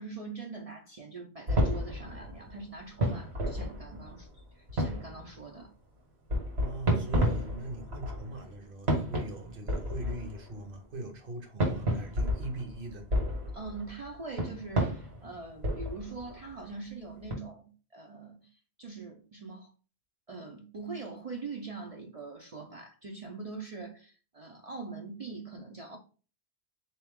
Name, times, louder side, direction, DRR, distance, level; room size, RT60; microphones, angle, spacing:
voice 1, 0.0-4.3 4.5-5.7 13.5-18.5 18.8-19.7 20.3-26.0, right 3 dB, 45° right, 0.6 m, -43 dB
sound 1, 1.5-4.4 4.7-5.4 6.3-8.5 8.9-10.7 11.6-16.6 17.2-17.3, equal, 75° right, 1.7 m, -31 dB
voice 2, 6.6-13.1, right 1 dB, 60° right, 1.1 m, -41 dB
3.9 x 3.0 x 3.5 m
omnidirectional pair, 1.1 m